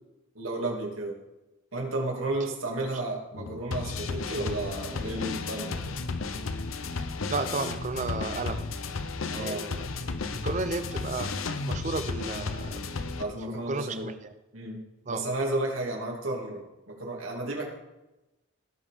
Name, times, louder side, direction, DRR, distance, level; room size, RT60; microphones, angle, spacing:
voice 1, 0.3-1.2 1.7-5.9 9.3-9.7 13.2-14.1 14.5-17.6, right 2 dB, 90° right, -1 dB, 2.7 m, -33 dB
sound 1, 3.4-13.2, left 3 dB, 85° left, 0.7 m, -33 dB
voice 2, 7.3-8.7 9.4-9.8 10.3-11.3 11.7-12.8 13.5-14.1 15.1-15.2, right 3 dB, 35° right, 10 dB, 0.6 m, -33 dB
16.5 x 5.7 x 5.0 m, 1.0 s
head